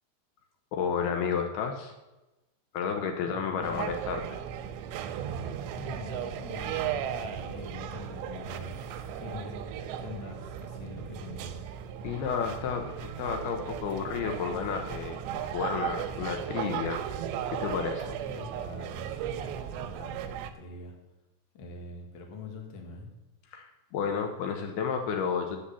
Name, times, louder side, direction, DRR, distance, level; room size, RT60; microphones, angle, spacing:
voice 1, 0.7-1.9 2.7-4.2 12.0-15.2 15.5-17.0 17.6-18.2 23.5-25.6, left 6 dB, 70° left, 4 dB, 2.6 m, -31 dB
voice 2, 3.2-3.9 5.7-11.7 18.2-20.2 20.5-20.9 21.5-23.1, left 3 dB, 50° left, 1 dB, 1.5 m, -44 dB
sound 1, 3.6-20.5, right 9 dB, 90° right, 2.9 m, -36 dB
10.0 x 7.9 x 7.0 m, 1.0 s
omnidirectional pair, 5.0 m